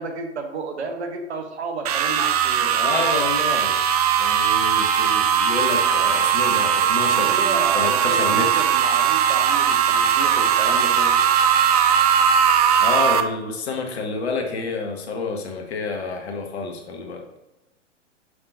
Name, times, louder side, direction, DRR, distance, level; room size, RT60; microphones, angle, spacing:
voice 1, 0.0-3.0 7.2-11.1, right 4 dB, 60° right, 4 dB, 1.3 m, -32 dB
sound 1, 1.9-13.2, right 8 dB, 30° right, 0.5 m, -19 dB
voice 2, 2.6-3.8 4.2-8.7 12.8-17.3, left 4 dB, 60° left, 3 dB, 1.5 m, -29 dB
11.0 x 3.7 x 2.7 m, 0.95 s
figure-of-eight pair, 110°, 37 cm